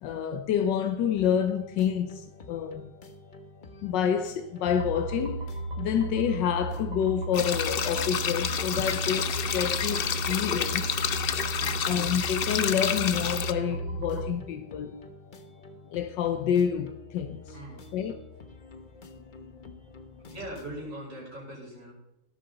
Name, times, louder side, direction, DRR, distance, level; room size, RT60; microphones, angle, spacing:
voice 1, 0.0-2.9 3.8-11.0 11.8-15.0 15.9-17.6 17.9-18.2 19.4-19.8, left 8 dB, 85° left, 1.4 m, -28 dB
sound 1, 1.2-20.9, left 2 dB, 35° left, 0.9 m, -48 dB
sound 2, 4.7-14.3, right 2 dB, 75° right, 3.0 m, -35 dB
sound 3, 7.3-13.5, left 8 dB, 70° left, 0.5 m, -29 dB
voice 2, 11.5-11.9 17.5-18.0 20.3-21.9, equal, 45° right, 5.6 m, -40 dB
17.5 x 9.1 x 4.0 m
omnidirectional pair, 1.9 m